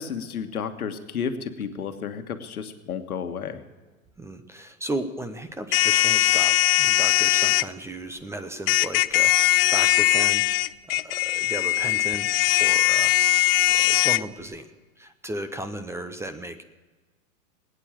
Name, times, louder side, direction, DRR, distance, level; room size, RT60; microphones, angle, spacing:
voice 1, 0.0-3.6, left 7 dB, 90° left, 7 dB, 1.5 m, -32 dB
voice 2, 4.2-10.4 10.8-12.3 12.6-13.2 13.6-14.7 15.0-16.6, right 1 dB, 5° right, 10 dB, 0.6 m, -35 dB
sound 1, 5.7-7.6 8.7-14.2, left 17 dB, 45° left, 0.5 m, -20 dB
20.5 x 9.2 x 7.3 m, 1.3 s
hypercardioid pair, 125°, 42 cm